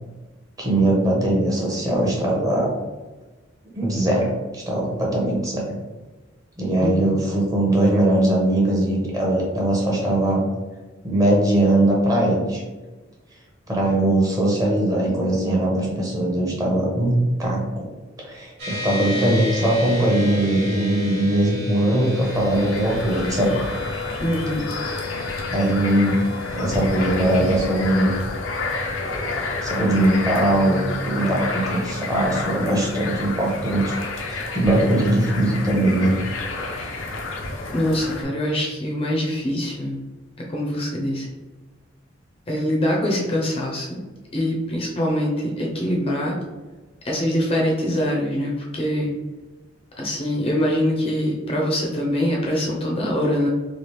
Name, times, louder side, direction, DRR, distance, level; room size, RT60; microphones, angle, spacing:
voice 1, 0.6-2.7 3.7-5.8 6.6-10.4 11.0-12.6 13.7-17.9 18.2-23.6 25.5-26.2 26.5-28.1 29.6-36.1, right 1 dB, 20° right, -3 dB, 0.7 m, -21 dB
voice 2, 6.8-7.1 24.2-24.7 37.7-40.0 40.5-41.3 42.5-44.0 44.3-46.4 47.0-49.1 50.0-53.5, equal, 30° left, -2 dB, 0.5 m, -23 dB
sound 1, 18.6-32.2, left 4 dB, 55° right, 0.9 m, -35 dB
sound 2, 22.0-38.2, left 2 dB, 90° left, 0.5 m, -29 dB
3.2 x 2.4 x 3.0 m, 1.2 s
head